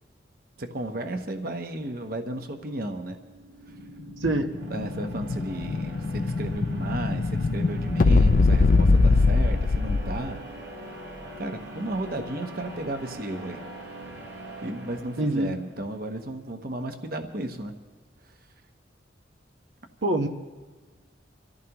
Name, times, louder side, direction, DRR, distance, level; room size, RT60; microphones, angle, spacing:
voice 1, 0.6-3.2 3.7-3.8 4.2-4.3 4.7-10.4 10.7-10.8 11.4-13.6 14.6-17.7 18.2-18.3, right 1 dB, 50° right, 6 dB, 1.0 m, -34 dB
sound 1, 3.1-15.9, right 2 dB, 65° right, 2.0 m, -42 dB
Explosion, 4.5-10.4, left 3 dB, 45° left, 0.4 m, -22 dB
voice 2, 15.2-15.5 20.0-20.3, right 1 dB, 85° right, 5 dB, 1.1 m, -24 dB
26.0 x 15.0 x 3.0 m, 1.4 s
head